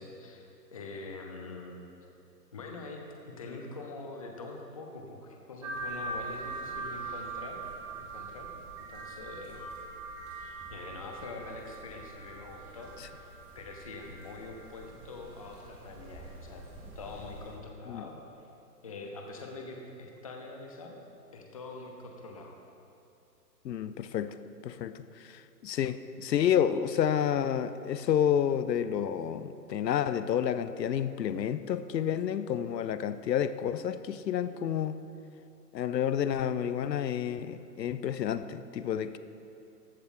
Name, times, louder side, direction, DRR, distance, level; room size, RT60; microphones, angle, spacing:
voice 1, 0.0-1.9 2.5-7.6 8.0-8.5 8.9-9.7 10.7-13.2 13.5-16.7 16.9-18.2 18.8-21.0 21.3-22.5, left 3 dB, 20° left, 0.6 m, -44 dB
sound 1, 5.6-17.5, right 3 dB, 5° right, 0.8 m, -42 dB
voice 2, 23.6-24.3 24.6-35.0 35.7-39.2, left 9 dB, 80° left, 0.6 m, -30 dB
14.5 x 7.9 x 3.7 m
hypercardioid pair, 160°, 50 cm